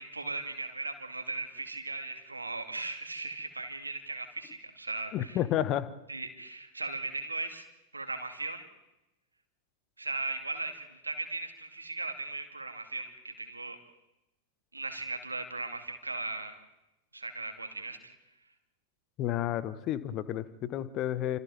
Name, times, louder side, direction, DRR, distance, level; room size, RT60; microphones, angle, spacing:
voice 1, 0.0-5.4 6.1-7.7 7.9-8.7 10.0-13.8 14.7-16.6 17.1-18.2, right 3 dB, 80° right, 6 dB, 2.2 m, -38 dB
voice 2, 5.1-5.9 19.2-21.4, left 12 dB, 35° left, 15 dB, 1.3 m, -31 dB
29.5 x 25.5 x 3.7 m, 0.93 s
figure-of-eight pair, 90°, 0 cm